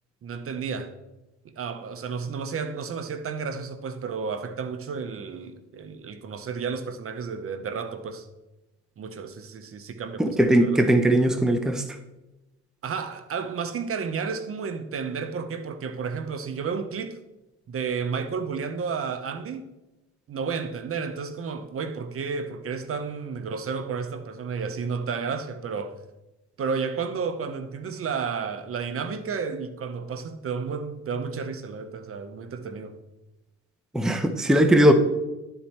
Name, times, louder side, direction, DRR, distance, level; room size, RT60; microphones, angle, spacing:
voice 1, 0.2-0.9 1.6-8.3 9.0-10.9 12.8-17.2 17.7-19.6 20.3-26.0 26.6-33.0, right 5 dB, 45° right, 0.7 m, -32 dB
voice 2, 10.2-11.8 33.9-34.9, right 1 dB, ahead, 0.6 m, -19 dB
11.0 x 4.4 x 4.2 m
cardioid pair, 105°, 30 cm